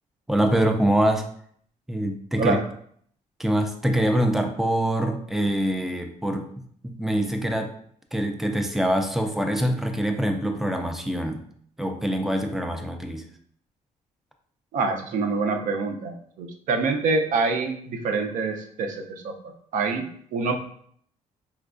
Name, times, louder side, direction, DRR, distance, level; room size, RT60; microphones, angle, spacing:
voice 1, 0.3-1.2 1.9-2.6 3.4-6.5 6.8-7.7 8.1-11.4 11.8-13.2, right 1 dB, ahead, 5 dB, 0.3 m, -24 dB
voice 2, 14.7-20.5, right 4 dB, 70° right, 5 dB, 0.5 m, -26 dB
4.3 x 2.3 x 2.4 m, 0.63 s
cardioid pair, 125°, 14 cm